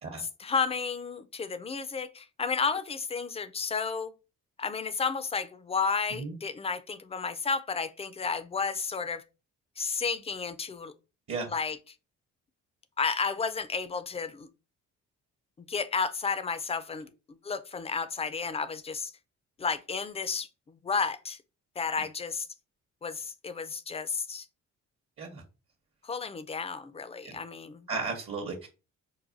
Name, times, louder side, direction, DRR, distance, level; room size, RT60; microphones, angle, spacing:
voice 1, 0.2-4.1 4.6-9.2 9.8-10.9 11.5-11.8 13.0-14.5 15.7-17.1 17.4-19.1 19.6-21.4 21.8-22.5 23.0-24.5 26.0-27.9, left 5 dB, 20° left, 0.3 m, -32 dB
voice 2, 27.9-28.7, right 4 dB, 45° right, 0.8 m, -34 dB
4.7 x 2.2 x 2.5 m
cardioid pair, 90°, 30 cm